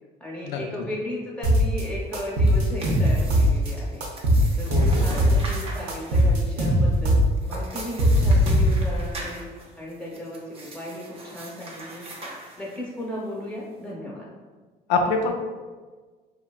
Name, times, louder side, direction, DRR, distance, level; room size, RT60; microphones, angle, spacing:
voice 1, 0.2-4.0 4.6-7.2 7.5-9.5 9.8-12.0 12.6-14.3, left 1 dB, 5° left, -4 dB, 0.8 m, -35 dB
sound 1, 1.4-1.8 2.1-3.7 4.0-5.6 5.9-9.0, equal, 85° right, 0.7 m, -20 dB
sound 2, 2.2-13.0, right 1 dB, 35° right, 0.6 m, -42 dB
voice 2, 4.7-5.2 14.9-15.3, left 3 dB, 90° left, 2 dB, 0.4 m, -25 dB
3.8 x 2.1 x 2.3 m, 1.4 s
cardioid pair, 110°, 17 cm